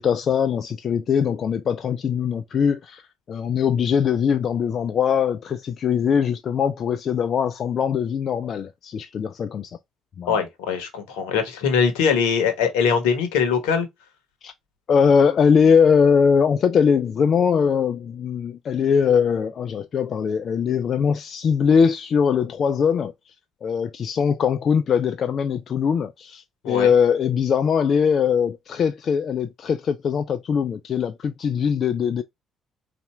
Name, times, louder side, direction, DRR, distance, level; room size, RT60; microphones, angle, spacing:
voice 1, 0.0-9.8 10.2-10.4 14.4-14.5 14.9-23.1 23.6-32.2, left 6 dB, 55° left, 0.4 m, -21 dB
voice 2, 10.3-13.9 26.6-26.9, left 6 dB, 80° left, 1.0 m, -22 dB
4.1 x 2.5 x 3.3 m
hypercardioid pair, 50°, 0 cm